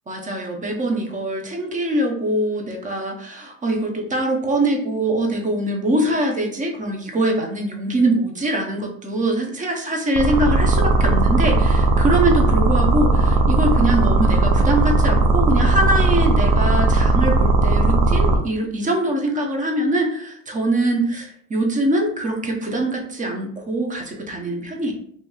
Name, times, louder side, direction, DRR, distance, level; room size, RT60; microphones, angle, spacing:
voice 1, 0.1-24.9, right 1 dB, 25° right, 2 dB, 0.7 m, -23 dB
sound 1, 10.2-18.4, right 2 dB, 85° right, 0.5 m, -17 dB
2.8 x 2.8 x 2.3 m, 0.65 s
cardioid pair, 105°, 32 cm